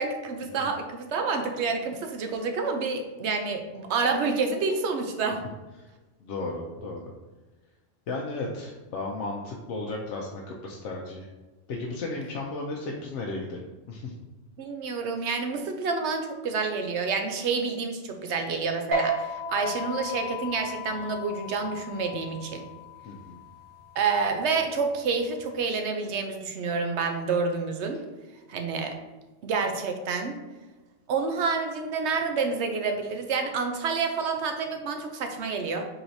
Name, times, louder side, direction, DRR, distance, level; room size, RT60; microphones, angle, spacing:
voice 1, 0.0-5.4 14.6-22.6 24.0-28.0 28.5-28.9 29.4-30.4 31.1-35.8, right 4 dB, 70° right, 4 dB, 0.8 m, -28 dB
voice 2, 6.2-7.0 8.1-11.3 11.7-14.1 18.3-18.4 23.0-23.4, left 2 dB, 75° left, -1 dB, 0.9 m, -34 dB
sound 1, 18.9-25.7, equal, 45° right, 1.5 m, -35 dB
4.4 x 3.9 x 2.6 m, 1.2 s
omnidirectional pair, 1.3 m